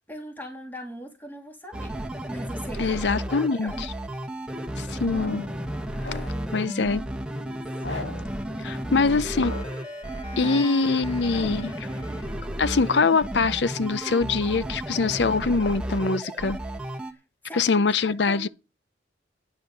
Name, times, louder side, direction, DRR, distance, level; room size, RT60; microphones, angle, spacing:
voice 1, 0.1-2.0 2.3-3.9 5.1-5.3 5.9-6.7 7.1-7.7 8.7-9.5 10.3-10.5 17.1-18.5, equal, 10° left, 3.1 m, -41 dB
sound 1, 1.7-17.1, right 1 dB, 5° right, 1.5 m, -33 dB
voice 2, 2.8-3.9 4.8-5.5 6.5-7.0 8.6-9.7 10.4-11.7 12.6-16.6 17.5-18.5, left 4 dB, 70° left, 0.6 m, -23 dB
sound 2, 5.1-5.6 6.0-6.5 7.8-8.3 9.3-9.9 10.4-10.9 11.3-11.7, left 2 dB, 90° left, 6.5 m, -38 dB
Wind instrument woodwind instrument, 9.0-13.2, left 1 dB, 30° left, 2.4 m, -47 dB
11.0 x 10.0 x 5.4 m
head